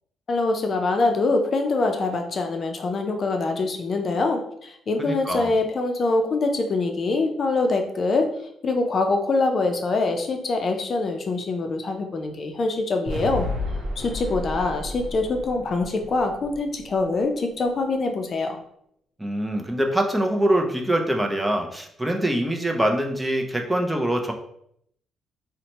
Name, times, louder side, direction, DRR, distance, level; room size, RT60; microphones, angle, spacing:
voice 1, 0.3-8.3 8.6-13.5 14.0-18.6, left 3 dB, 45° left, 4 dB, 0.5 m, -24 dB
voice 2, 5.0-5.5 19.2-24.3, right 1 dB, 10° right, 3 dB, 0.5 m, -24 dB
sound 1, 13.1-17.2, left 1 dB, 70° right, 0.7 m, -32 dB
2.7 x 2.1 x 4.0 m, 0.71 s
cardioid pair, 90°, 0 cm